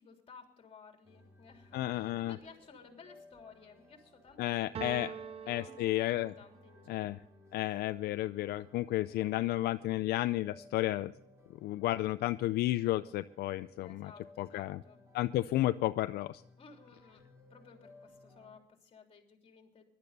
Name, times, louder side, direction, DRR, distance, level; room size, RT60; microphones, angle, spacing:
voice 1, 0.0-7.2 13.8-15.0 16.6-17.2 17.5-19.8, left 5 dB, 35° left, 3 dB, 3.4 m, -57 dB
sound 1, 1.0-18.6, left 2 dB, 15° right, 3.7 m, -60 dB
voice 2, 1.7-2.4 4.4-5.1 5.5-6.3 6.9-7.2 7.5-11.1 11.6-14.1 14.4-14.8 15.1-16.4, left 15 dB, 70° left, 12 dB, 0.5 m, -32 dB
sound 2, 4.7-6.7, right 8 dB, 35° right, 0.5 m, -44 dB
19.0 x 12.0 x 4.1 m, 0.69 s
cardioid pair, 110°, 17 cm